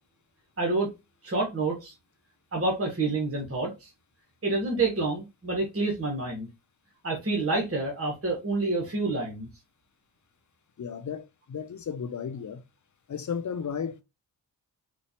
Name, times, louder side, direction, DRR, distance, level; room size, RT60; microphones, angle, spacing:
voice 1, 0.6-0.9 1.2-1.9 2.5-3.9 4.4-6.5 7.0-9.5, right 3 dB, 30° right, 1.6 m, -28 dB
voice 2, 10.8-12.6 13.1-14.0, left 7 dB, 40° left, 0.7 m, -34 dB
4.2 x 2.7 x 2.9 m
supercardioid pair, 40°, 45 cm